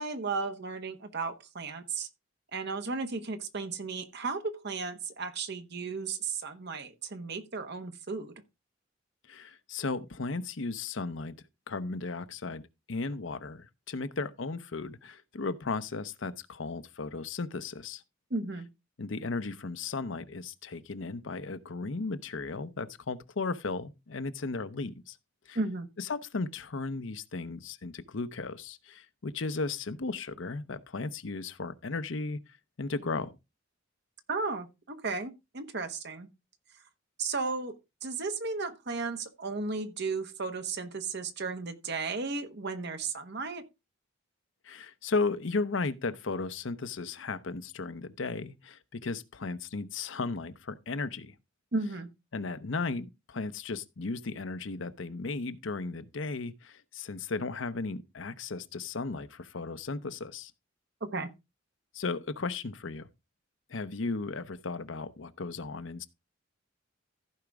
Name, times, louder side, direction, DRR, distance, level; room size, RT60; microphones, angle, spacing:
voice 1, 0.0-2.1 2.5-8.3 18.3-18.7 25.5-25.9 34.3-36.3 37.2-37.8 38.0-43.6 51.7-52.1 61.0-61.3, right 4 dB, 55° right, 1.2 m, -34 dB
voice 2, 9.3-11.3 11.7-12.6 12.9-18.0 19.0-25.2 25.5-25.6 26.0-32.4 32.8-33.3 44.6-51.3 52.3-60.5 61.9-63.1 63.7-66.1, left 3 dB, 70° left, 0.7 m, -35 dB
15.0 x 5.0 x 3.5 m
head